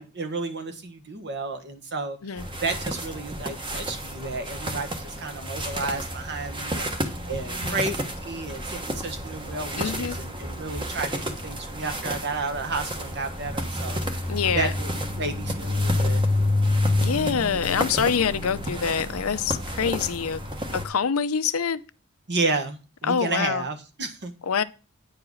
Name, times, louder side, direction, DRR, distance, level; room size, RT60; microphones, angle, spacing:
voice 1, 0.0-14.0 14.5-14.9 15.2-16.2 22.3-24.3, right 3 dB, 55° right, 1.4 m, -32 dB
sound 1, 2.4-20.9, left 1 dB, 25° right, 1.2 m, -29 dB
voice 2, 9.8-10.2 14.3-14.7 17.0-20.4 20.7-21.8 23.0-23.6 24.5-24.6, left 6 dB, 85° left, 0.6 m, -25 dB
9.6 x 4.8 x 6.2 m
head